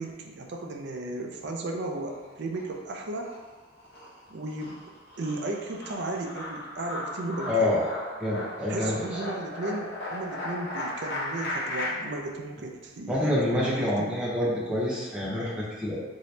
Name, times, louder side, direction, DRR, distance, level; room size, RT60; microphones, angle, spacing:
voice 1, 0.0-3.3 4.3-4.8 5.2-7.8 8.7-14.2, right 2 dB, 60° right, 2 dB, 0.4 m, -35 dB
sound 1, 2.0-2.8 3.1-11.9, left 1 dB, 55° left, 1.0 m, -36 dB
voice 2, 7.5-7.9 8.2-9.1 13.1-16.0, left 1 dB, 5° right, -8 dB, 0.8 m, -27 dB
2.9 x 2.7 x 3.2 m, 1.2 s
head